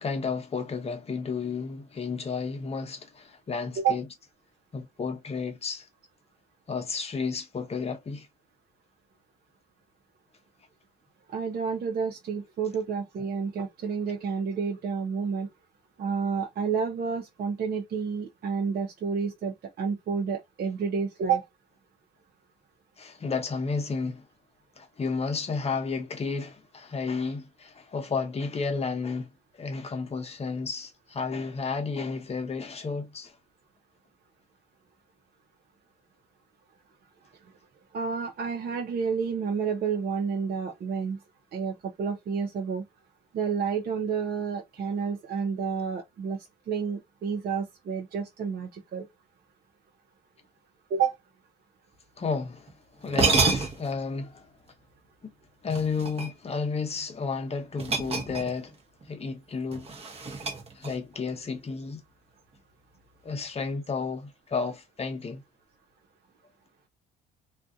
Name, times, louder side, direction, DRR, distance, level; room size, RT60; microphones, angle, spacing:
voice 1, 0.0-4.0 4.7-5.9 6.7-8.3 23.0-24.3 24.8-29.3 29.5-33.3 52.2-52.7 53.0-54.5 55.2-55.3 55.6-58.7 59.1-59.9 60.7-62.0 63.2-65.4, left 4 dB, 30° left, 0.9 m, -32 dB
voice 2, 11.3-15.5 16.0-21.5 37.9-41.2 41.5-42.8 43.3-49.1 50.9-51.2, right 6 dB, 50° right, 0.7 m, -30 dB
sound 1, 52.7-52.8 53.1-54.0 55.7-56.6 57.8-58.7 59.0-59.2 59.7-61.1, right 3 dB, 30° right, 0.9 m, -28 dB
2.5 x 2.3 x 2.6 m
cardioid pair, 90°, 21 cm